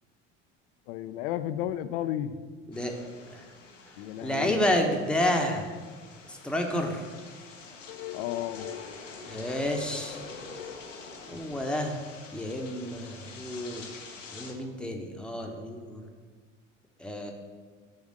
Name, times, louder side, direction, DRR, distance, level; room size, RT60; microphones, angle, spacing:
voice 1, 0.9-2.4 4.0-4.6 7.9-8.9 10.6-10.8, left 12 dB, 50° left, 12 dB, 0.5 m, -33 dB
sound 1, 2.7-14.5, left 4 dB, 85° left, 0.9 m, -46 dB
voice 2, 4.2-5.8 6.3-7.1 9.3-10.2 11.3-12.0 12.3-13.9 14.3-16.1 17.0-17.3, left 1 dB, ahead, 2 dB, 0.9 m, -30 dB
7.2 x 3.5 x 6.4 m, 1.5 s
figure-of-eight pair, 65°, 37 cm